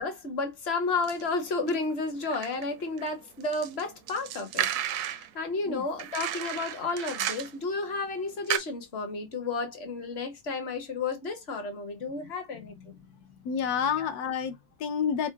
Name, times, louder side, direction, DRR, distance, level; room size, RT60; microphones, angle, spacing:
voice 1, 0.0-12.8 14.0-14.1, left 3 dB, 40° left, 1.0 m, -32 dB
sound 1, 1.0-1.2 1.7-3.1 3.4-5.3 6.0-7.7 8.0-8.1 8.5-8.6, right 11 dB, 70° right, 1.0 m, -33 dB
voice 2, 13.4-15.3, left 7 dB, 60° left, 1.2 m, -29 dB
4.5 x 2.1 x 4.6 m
omnidirectional pair, 2.0 m